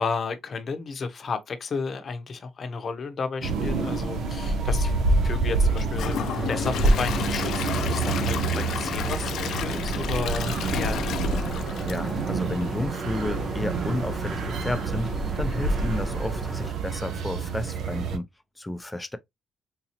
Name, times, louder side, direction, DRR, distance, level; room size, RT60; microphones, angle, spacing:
voice 1, 0.0-4.9 5.2-6.2 6.5-11.5, left 4 dB, 45° left, 0.8 m, -32 dB
sound 1, 3.4-18.2, right 3 dB, 70° right, 0.7 m, -27 dB
Gurgling / Toilet flush / Trickle dribble, 5.7-12.8 13.2-13.3 13.8-13.9, left 9 dB, 75° left, 0.4 m, -33 dB
sound 2, 6.3-16.7, right 2 dB, 30° right, 1.0 m, -33 dB
voice 2, 11.8-15.1 15.4-18.2 18.6-19.2, left 1 dB, 15° left, 0.5 m, -32 dB
3.8 x 2.8 x 2.7 m
cardioid pair, 90°, 0 cm